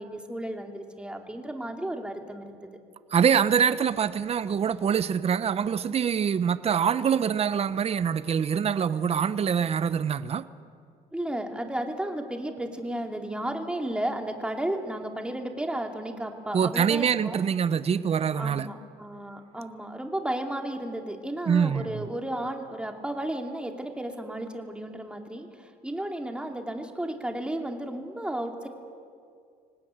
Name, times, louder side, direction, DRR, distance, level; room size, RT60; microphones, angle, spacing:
voice 1, 0.0-2.7 11.1-17.4 18.3-28.7, right 1 dB, 5° right, 2.5 m, -33 dB
voice 2, 3.1-10.5 16.5-18.7 21.5-22.0, right 7 dB, 35° right, 0.8 m, -25 dB
24.5 x 19.0 x 8.9 m
cardioid pair, 110°, 17 cm